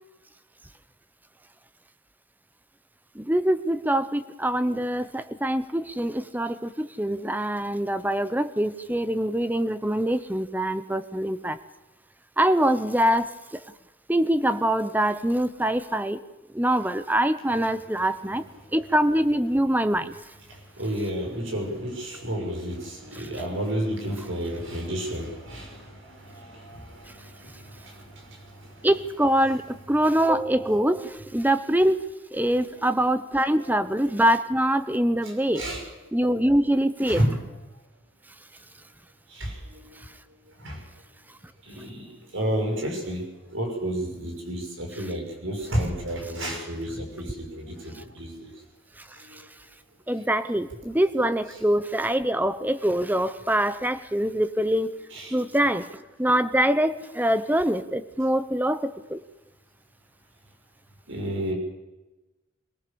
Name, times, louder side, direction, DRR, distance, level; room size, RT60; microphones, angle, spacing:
voice 1, 3.2-11.6 12.4-13.3 14.1-16.2 16.5-18.4 18.7-20.1 28.8-32.0 32.3-35.6 36.1-37.2 50.1-54.9 55.3-55.9 56.2-59.2, right 1 dB, 10° right, 13 dB, 0.9 m, -24 dB
voice 2, 20.5-28.9 32.8-32.9 33.5-33.7 35.2-36.2 37.1-37.4 39.3-39.9 40.6-40.8 41.7-48.5 49.2-49.4 55.1-55.4 61.1-61.5, equal, 70° right, 2 dB, 6.4 m, -31 dB
23.0 x 18.0 x 7.0 m, 1.1 s
head